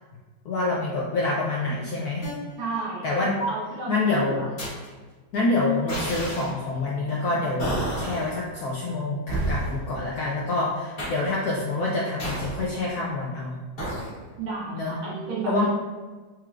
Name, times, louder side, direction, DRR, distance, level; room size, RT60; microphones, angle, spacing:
voice 1, 0.5-2.3 3.0-3.4 3.9-4.5 5.3-13.6 14.7-15.0 15.5-15.7, left 2 dB, 75° left, -3 dB, 0.8 m, -26 dB
sound 1, 2.2-2.3 3.4-3.7 4.6-4.9 5.9-6.5 7.6-8.3 9.3-9.8 11.0-11.3 12.2-12.7 13.8-14.1, right 1 dB, 35° left, 1.1 m, -30 dB
voice 2, 2.6-3.0 3.5-4.5 14.4-15.7, right 4 dB, 90° right, -5 dB, 1.8 m, -32 dB
4.5 x 3.1 x 2.4 m, 1.3 s
omnidirectional pair, 2.1 m